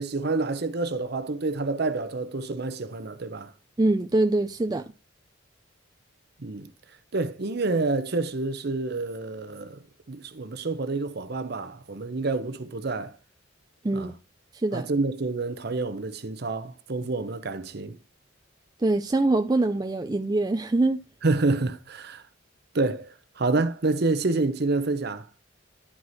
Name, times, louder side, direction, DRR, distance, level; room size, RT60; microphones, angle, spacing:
voice 1, 0.0-3.5 6.4-6.7 7.1-9.8 10.1-13.1 13.9-14.1 14.7-18.0 21.2-22.2 22.7-25.3, right 3 dB, 50° right, 0.8 m, -28 dB
voice 2, 3.8-4.8 13.8-14.1 14.5-14.9 18.8-21.0, right 2 dB, 20° right, 0.4 m, -24 dB
11.0 x 4.8 x 4.0 m
head